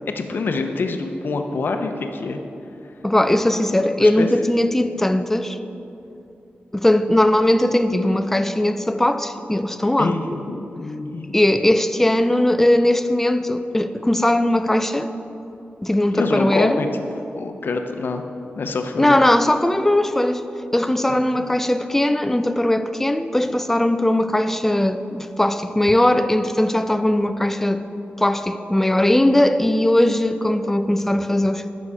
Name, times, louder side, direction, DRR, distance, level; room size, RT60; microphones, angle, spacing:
voice 1, 0.1-2.4 4.0-4.3 10.0-11.4 16.1-16.9 17.3-18.2 18.6-19.2 21.3-21.5, left 3 dB, 65° left, 6 dB, 0.7 m, -26 dB
voice 2, 3.0-5.6 6.7-10.2 11.3-15.1 15.8-16.8 19.0-20.4 20.7-27.8 28.2-31.7, left 1 dB, 10° left, 10 dB, 0.3 m, -19 dB
9.8 x 6.3 x 4.8 m, 2.8 s
wide cardioid pair, 120°, 4 cm